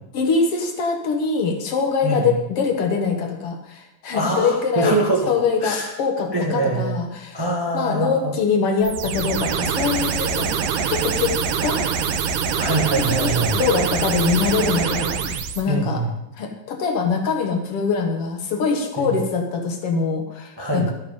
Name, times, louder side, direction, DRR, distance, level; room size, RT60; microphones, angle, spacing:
voice 1, 0.1-4.9 5.3-7.4 7.7-10.5 10.9-11.8 13.0-16.0 16.3-20.9, left 5 dB, 55° left, 4 dB, 1.8 m, -23 dB
voice 2, 4.1-5.3 5.6-5.9 6.3-7.0 7.3-8.3 12.5-13.6 15.7-16.2 19.0-19.1 20.6-20.9, right 2 dB, 20° right, -1 dB, 0.5 m, -23 dB
sound 1, 8.8-15.6, right 7 dB, 70° right, 2.1 m, -24 dB
12.0 x 9.8 x 5.3 m, 0.86 s
omnidirectional pair, 4.1 m